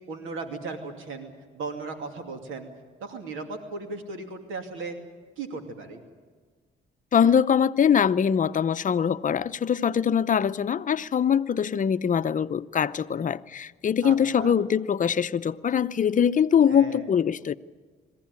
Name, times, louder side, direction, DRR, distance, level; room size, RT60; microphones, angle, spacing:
voice 1, 0.1-2.7 3.0-5.0 5.4-6.0 14.0-14.6 16.7-17.1, right 3 dB, 85° right, 2.6 m, -36 dB
voice 2, 7.1-17.6, left 8 dB, 40° left, 0.7 m, -23 dB
22.0 x 15.5 x 9.5 m
cardioid pair, 90°, 20 cm